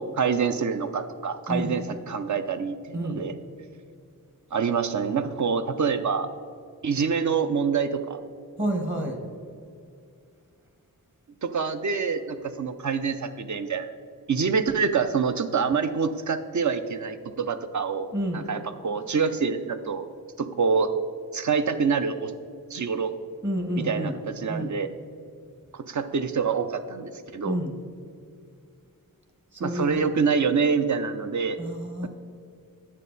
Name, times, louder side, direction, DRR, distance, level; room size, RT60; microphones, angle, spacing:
voice 1, 0.0-3.3 4.5-6.3 6.8-8.2 11.4-13.9 14.3-18.1 18.3-20.1 20.4-20.9 21.3-22.3 22.7-23.1 23.8-24.9 25.7-27.6 29.6-31.6 32.0-32.1, right 5 dB, 55° right, 10 dB, 0.7 m, -26 dB
voice 2, 8.6-9.2 18.1-18.4 23.4-24.1 24.5-24.7 27.4-27.7 29.5-30.2 31.6-32.1, equal, 30° right, 3 dB, 1.5 m, -29 dB
9.7 x 7.3 x 4.1 m, 2.3 s
wide cardioid pair, 65°, 36 cm